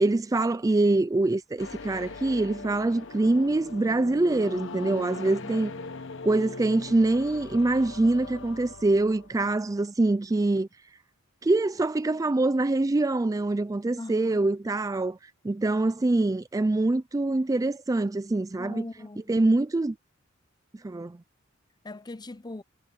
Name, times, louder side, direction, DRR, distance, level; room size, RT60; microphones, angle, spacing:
voice 1, 0.0-5.7 6.2-10.7 11.4-18.8 19.3-20.0 20.8-21.2, right 2 dB, 15° right, 0.3 m, -24 dB
sound 1, 1.6-9.5, left 3 dB, 65° left, 1.1 m, -41 dB
voice 2, 5.1-5.7 14.0-14.4 18.6-19.2 21.8-22.6, left 2 dB, 20° left, 0.7 m, -40 dB
head